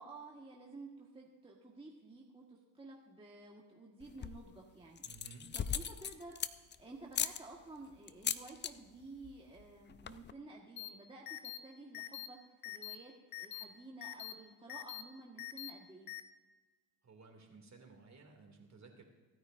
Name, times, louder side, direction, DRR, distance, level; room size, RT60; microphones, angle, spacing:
voice 1, 0.0-5.0 5.5-12.4 12.6-13.1 13.4-16.1, right 2 dB, 10° right, -2 dB, 1.6 m, -52 dB
sound 1, 4.0-4.5 5.0-6.8 7.1-7.4 8.1-8.7 9.0-9.3 9.6-9.7 9.9-10.3, left 8 dB, 25° left, 0.4 m, -38 dB
voice 2, 5.0-5.5 17.0-19.0, right 4 dB, 35° right, 2 dB, 2.7 m, -56 dB
sound 2, 10.8-10.9 11.3-11.6 11.9-12.3 12.6-12.9 13.3-13.6 14.0-14.3 14.7-15.0 15.4-15.7 16.1-16.2, left 15 dB, 45° left, 0.9 m, -44 dB
25.5 x 9.5 x 2.6 m, 1.3 s
supercardioid pair, 90°, 48 cm